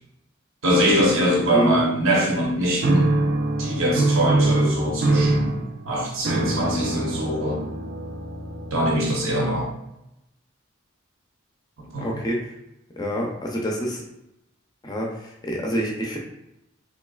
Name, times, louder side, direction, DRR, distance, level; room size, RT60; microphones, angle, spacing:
voice 1, 0.6-3.1 3.6-5.6 5.9-7.6 8.7-9.7 11.8-12.1, equal, 80° right, -3 dB, 0.8 m, -22 dB
sound 1, 2.8-9.3, right 2 dB, 50° right, 0.3 m, -24 dB
voice 2, 12.0-12.5 13.0-14.0 14.8-16.2, equal, 20° left, -1 dB, 0.5 m, -27 dB
3.8 x 3.0 x 2.3 m, 0.86 s
head